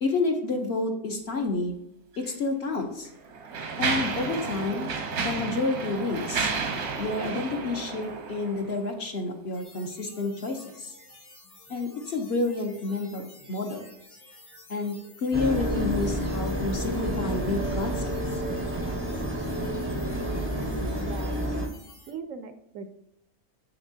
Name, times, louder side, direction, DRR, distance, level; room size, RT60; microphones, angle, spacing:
voice 1, 0.0-1.8 2.2-3.1 3.8-6.5 7.0-10.9 11.7-13.9 14.7-18.1, left 3 dB, 50° left, 3 dB, 1.0 m, -29 dB
Mechanisms, 2.2-2.3 3.0-8.8, right 4 dB, 85° right, 1.5 m, -31 dB
sound 1, 9.5-22.1, left 2 dB, 80° left, 2.6 m, -52 dB
sound 2, 15.3-21.7, equal, 15° right, 0.5 m, -29 dB
voice 2, 20.6-21.4 22.1-22.9, right 4 dB, 70° right, 9 dB, 0.9 m, -39 dB
7.0 x 6.5 x 2.7 m, 0.78 s
omnidirectional pair, 1.5 m